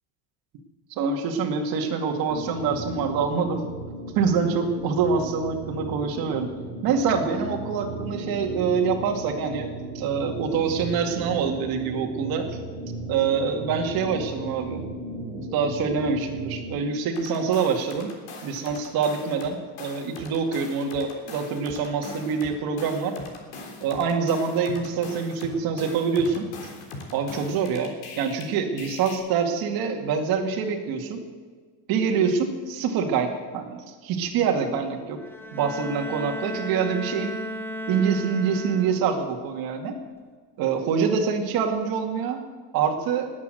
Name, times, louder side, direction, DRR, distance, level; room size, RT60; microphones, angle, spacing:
voice 1, 0.9-3.6 4.2-6.5 6.8-12.5 13.1-14.8 15.2-18.1 18.4-23.1 23.8-26.5 27.1-27.9 28.2-31.2 31.9-35.2 35.5-37.3 37.9-40.0 40.6-42.4 42.7-43.3, right 6 dB, 50° right, 3 dB, 2.2 m, -25 dB
sound 1, 2.3-16.8, right 1 dB, 15° right, 2.9 m, -36 dB
sound 2, 17.2-19.5 19.8-28.4 28.8-29.2, left 3 dB, 75° left, 3.6 m, -40 dB
Bowed string instrument, 35.2-39.3, equal, 5° left, 0.8 m, -35 dB
19.5 x 8.6 x 7.8 m, 1.5 s
cardioid pair, 175°, 46 cm